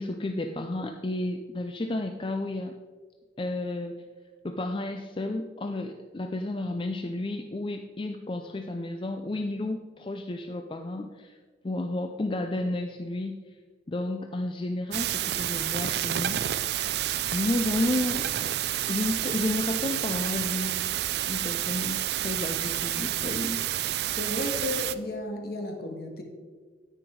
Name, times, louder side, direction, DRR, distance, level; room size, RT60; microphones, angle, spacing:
voice 1, 0.0-2.7 3.4-4.0 4.4-11.3 11.6-13.4 13.9-16.4 17.3-18.2 18.9-20.8 21.2-23.7, left 2 dB, 30° left, 5 dB, 0.5 m, -31 dB
sound 1, 14.9-24.9, right 12 dB, 60° right, 0.4 m, -29 dB
voice 2, 24.2-26.2, left 1 dB, 55° left, 3 dB, 1.7 m, -33 dB
9.9 x 9.0 x 4.6 m, 1.5 s
head